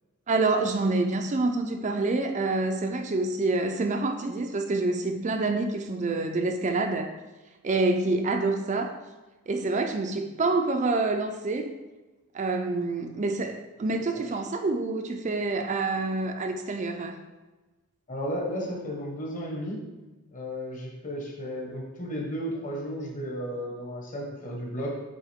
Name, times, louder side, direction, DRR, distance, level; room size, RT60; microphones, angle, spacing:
voice 1, 0.3-7.1 7.6-8.9 9.5-11.8 12.3-17.2, right 3 dB, 35° right, 5 dB, 0.4 m, -27 dB
voice 2, 18.1-19.8 20.3-25.0, equal, 35° left, -2 dB, 1.3 m, -33 dB
8.2 x 3.6 x 3.6 m, 1.2 s
head